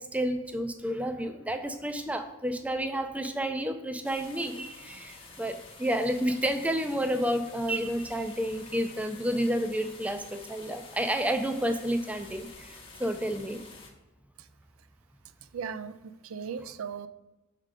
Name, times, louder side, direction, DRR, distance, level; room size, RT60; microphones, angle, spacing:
voice 1, 0.0-13.6, equal, 5° right, 7 dB, 0.4 m, -30 dB
sound 1, 4.0-13.9, left 3 dB, 25° left, 0.9 m, -49 dB
voice 2, 15.5-17.1, right 6 dB, 85° right, 12 dB, 0.4 m, -37 dB
6.6 x 3.7 x 4.8 m, 1.1 s
head